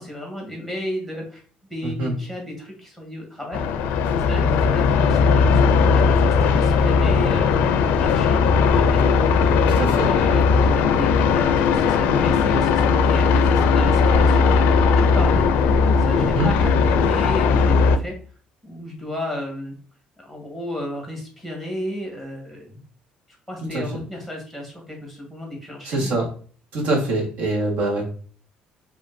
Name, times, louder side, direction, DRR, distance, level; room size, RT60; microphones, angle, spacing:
voice 1, 0.0-1.4 1.7-3.8 4.1-7.5 7.8-9.2 9.8-15.6 15.9-18.2 18.6-19.7 20.2-22.8 23.5-26.1, left 1 dB, 5° right, 0 dB, 1.3 m, -33 dB
voice 2, 1.8-2.1 9.8-10.1 16.2-16.5 23.7-23.8 25.8-26.3 26.7-28.1, right 2 dB, 60° right, 0 dB, 1.4 m, -24 dB
sound 1, 3.5-18.0, left 5 dB, 85° left, 0.4 m, -18 dB
5.0 x 2.8 x 2.6 m, 0.43 s
cardioid pair, 160°, 3 cm